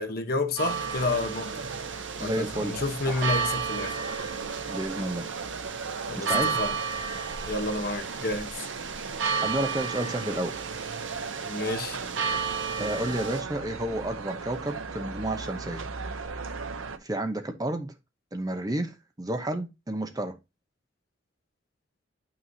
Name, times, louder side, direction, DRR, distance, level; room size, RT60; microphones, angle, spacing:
voice 1, 0.0-1.6 2.2-4.0 6.1-6.8 7.5-8.5 11.4-12.0, left 2 dB, 50° left, 1.0 m, -30 dB
sound 1, 0.6-13.4, right 6 dB, 70° right, 1.2 m, -33 dB
sound 2, 0.6-17.0, right 4 dB, 90° right, 0.7 m, -37 dB
voice 2, 2.2-2.7 3.1-3.3 4.7-5.3 6.2-6.6 9.4-10.6 12.8-15.8 17.0-17.9 18.3-20.4, right 1 dB, 20° right, 0.8 m, -31 dB
9.4 x 5.8 x 2.8 m
head